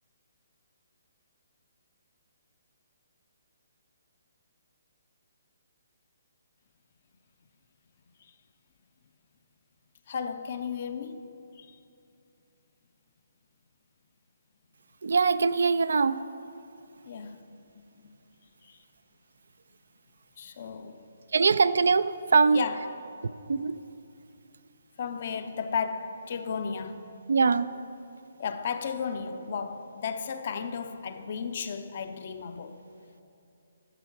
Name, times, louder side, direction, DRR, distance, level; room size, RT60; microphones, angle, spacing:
voice 1, 10.1-11.3 11.6-11.8 17.1-17.4 17.7-18.1 18.6-18.8 20.4-21.0 22.5-23.2 25.0-27.1 28.4-32.8, left 6 dB, 50° left, 0.6 m, -34 dB
voice 2, 15.0-16.2 21.3-22.6 23.5-23.8 27.3-27.7, right 4 dB, 70° right, 0.3 m, -22 dB
11.5 x 7.0 x 4.6 m
figure-of-eight pair, 140°, 0 cm